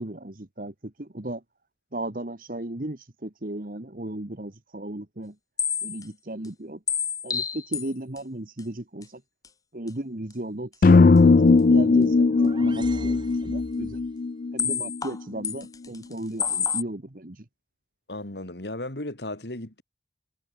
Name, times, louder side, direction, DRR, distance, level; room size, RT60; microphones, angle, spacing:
voice 1, 0.0-1.4 1.9-5.3 5.8-6.8 7.2-9.2 9.7-14.0 14.5-17.4, right 1 dB, 50° right, 1.5 m, -35 dB
sound 1, 5.6-6.1 6.4-6.5 6.9-7.9 8.2-8.3 8.6-8.7 9.0-9.1 9.4-9.5 9.9-10.0 10.3-10.4 14.6-15.2 15.4-16.1 16.4-16.8, left 7 dB, 20° left, 0.8 m, -28 dB
sound 2, 10.8-15.0, left 3 dB, 50° left, 0.4 m, -18 dB
sound 3, 11.9-14.2, right 1 dB, 25° right, 2.7 m, -42 dB
voice 2, 18.1-19.8, left 1 dB, 75° left, 2.9 m, -35 dB
head